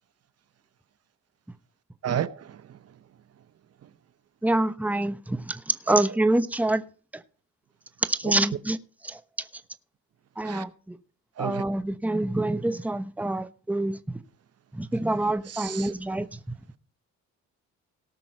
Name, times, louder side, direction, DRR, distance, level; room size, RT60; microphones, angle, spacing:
voice 1, 2.0-2.6 5.9-6.0 10.4-10.6 11.4-11.6 15.5-15.9, right 9 dB, 55° right, 0.8 m, -31 dB
voice 2, 4.4-6.8 8.1-8.8 9.0-9.2 10.4-11.0 11.4-14.2 14.7-16.4, right 2 dB, 5° right, 0.9 m, -26 dB
18.0 x 6.1 x 4.4 m
cardioid pair, 90°, 30 cm